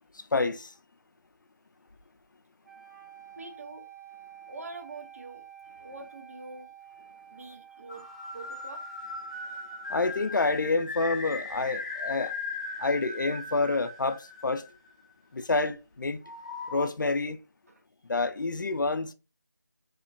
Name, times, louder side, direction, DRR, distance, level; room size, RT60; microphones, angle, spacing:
voice 1, 0.3-0.7 9.9-12.3 12.8-14.6 15.3-16.2 16.7-17.4 18.1-19.1, left 3 dB, 85° left, 0.4 m, -28 dB
sound 1, 2.6-10.7, right 9 dB, 65° right, 1.1 m, -51 dB
voice 2, 3.4-3.8 4.5-5.5 5.8-6.7 7.3-8.1 8.3-8.8 17.7-17.8, right 3 dB, 50° right, 0.6 m, -44 dB
sound 2, 7.9-15.1 16.2-16.9, left 3 dB, 20° left, 0.4 m, -38 dB
2.9 x 2.1 x 2.5 m
figure-of-eight pair, 165°, 10 cm